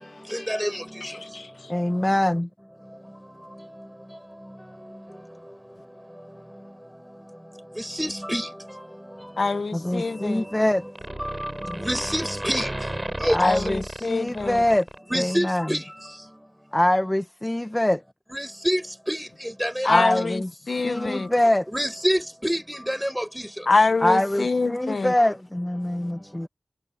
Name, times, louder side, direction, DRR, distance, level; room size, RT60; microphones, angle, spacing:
voice 1, 1.0-1.5 9.4-10.4 13.4-14.6 19.8-20.4 20.7-21.3 23.7-25.1, left 3 dB, 80° left, 1.1 m, -25 dB
voice 2, 1.7-2.5 9.7-10.8 11.7-11.9 13.3-14.9 15.1-15.7 16.7-18.0 19.9-20.5 20.8-21.7 24.0-26.5, left 1 dB, 20° left, 1.4 m, -23 dB
voice 3, 8.0-8.4 11.9-12.6 13.2-13.4 15.1-15.8 18.3-18.8 19.1-19.2 19.6-19.7 21.7-22.6 22.9-23.2, equal, 5° right, 5.5 m, -25 dB
sound 1, 10.0-10.7 10.9-15.4, right 1 dB, 25° right, 5.1 m, -34 dB
wide cardioid pair, 65°, 0 cm